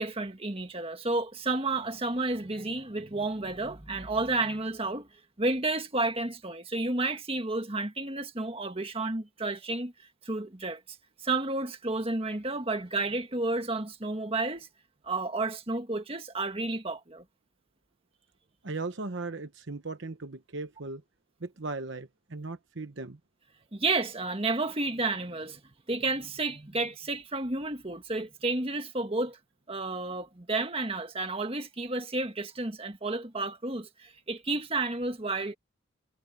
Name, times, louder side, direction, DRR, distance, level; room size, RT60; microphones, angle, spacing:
voice 1, 0.0-5.1 5.4-9.9 10.2-11.0 11.2-14.7 15.0-17.2 23.7-25.6 25.9-29.4 29.7-35.5, right 2 dB, 25° right, 1.7 m, -31 dB
voice 2, 18.6-21.0 21.4-23.2, right 3 dB, 60° right, 1.0 m, -37 dB
head